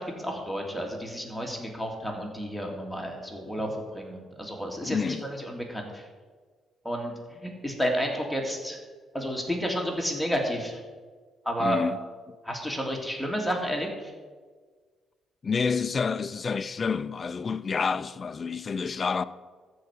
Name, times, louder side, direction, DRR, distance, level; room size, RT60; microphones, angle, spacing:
voice 1, 0.0-6.0 6.8-8.8 9.1-10.8 11.4-11.8 12.4-14.1, equal, ahead, 2.3 m, -31 dB
voice 2, 4.8-5.2 11.6-12.4 15.4-19.2, left 5 dB, 40° left, 0.4 m, -29 dB
13.5 x 4.7 x 8.1 m
cardioid pair, 90°, 0 cm